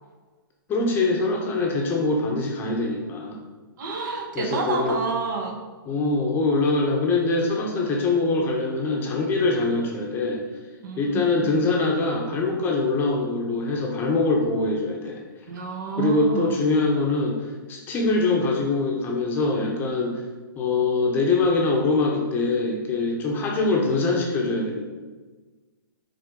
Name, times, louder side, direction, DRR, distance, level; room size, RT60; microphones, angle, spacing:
voice 1, 0.7-3.4 4.3-5.0 5.9-10.4 11.0-15.2 16.0-20.2 20.6-24.9, left 3 dB, 15° left, 0 dB, 0.9 m, -23 dB
voice 2, 3.8-5.6 10.8-11.6 15.5-16.5, right 4 dB, 55° right, 1 dB, 1.4 m, -29 dB
6.5 x 3.9 x 5.2 m, 1.3 s
hypercardioid pair, 150°, 12 cm